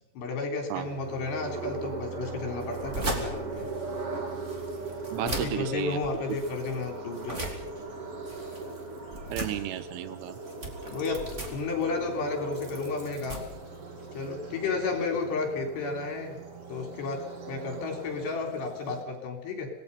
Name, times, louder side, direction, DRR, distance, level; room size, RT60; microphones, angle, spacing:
voice 1, 0.2-3.7 5.2-7.5 10.9-13.4 14.1-16.4 16.7-19.7, left 4 dB, 60° left, 2 dB, 5.5 m, -32 dB
sound 1, 0.7-19.0, right 3 dB, 40° right, 2.7 m, -39 dB
sound 2, 2.6-14.3, right 2 dB, 20° right, 2.3 m, -39 dB
voice 2, 5.1-6.0 9.3-10.4, right 12 dB, 90° right, 12 dB, 3.6 m, -33 dB
26.5 x 19.0 x 5.5 m, 0.85 s
omnidirectional pair, 5.5 m